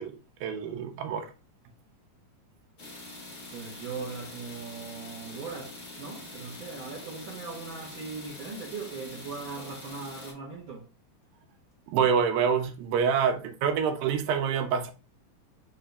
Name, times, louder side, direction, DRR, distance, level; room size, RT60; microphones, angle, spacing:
voice 1, 0.0-1.3 11.9-14.9, right 7 dB, 80° right, 2.4 m, -27 dB
sound 1, 2.8-10.3, left 2 dB, 55° left, 0.9 m, -44 dB
voice 2, 3.5-10.9, right 4 dB, 65° right, 1.2 m, -39 dB
5.6 x 2.7 x 3.4 m
omnidirectional pair, 4.1 m